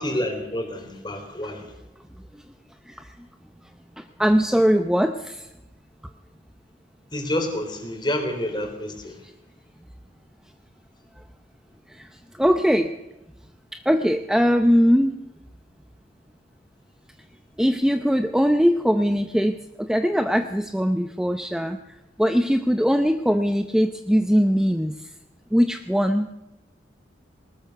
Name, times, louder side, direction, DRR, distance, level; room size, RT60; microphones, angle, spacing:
voice 1, 0.0-1.6 7.1-9.1, left 1 dB, 25° left, 4 dB, 4.0 m, -28 dB
voice 2, 4.0-5.5 11.9-12.1 12.3-12.9 13.9-15.2 17.6-21.8 22.2-25.1 25.5-26.3, equal, 5° right, 7 dB, 0.6 m, -21 dB
19.5 x 19.5 x 6.8 m, 0.95 s
head